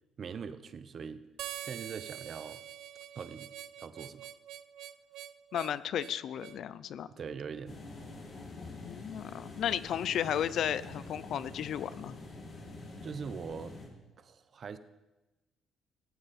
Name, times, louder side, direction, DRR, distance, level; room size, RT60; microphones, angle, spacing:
voice 1, 0.2-1.3 1.6-2.6 3.1-3.5 3.8-4.3 7.2-7.8 13.0-13.8 14.2-14.8, right 6 dB, 45° right, 12 dB, 0.8 m, -42 dB
Harmonica, 1.4-6.6, right 12 dB, 80° right, 0.5 m, -45 dB
voice 2, 5.5-7.1 8.8-12.2, left 9 dB, 65° left, 16 dB, 0.6 m, -34 dB
sound 1, 7.7-13.9, left 2 dB, 45° left, 4.5 m, -46 dB
17.0 x 14.0 x 4.3 m, 1.1 s
cardioid pair, 115°, 0 cm